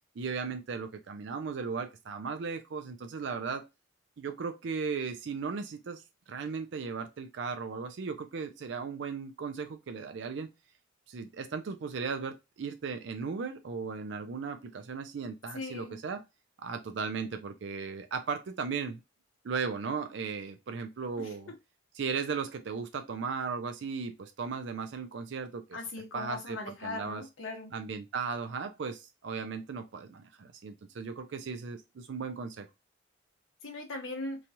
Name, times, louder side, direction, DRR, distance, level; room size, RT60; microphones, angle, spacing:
voice 1, 0.2-3.7 4.2-6.0 6.3-10.5 11.1-16.2 16.6-19.0 19.4-21.5 21.9-25.8 26.1-27.2 27.7-32.7, right 5 dB, 65° right, 0.4 m, -36 dB
voice 2, 15.5-16.0 21.2-21.3 25.7-27.7 33.6-34.4, left 2 dB, 85° left, 0.9 m, -39 dB
3.0 x 2.3 x 2.6 m
head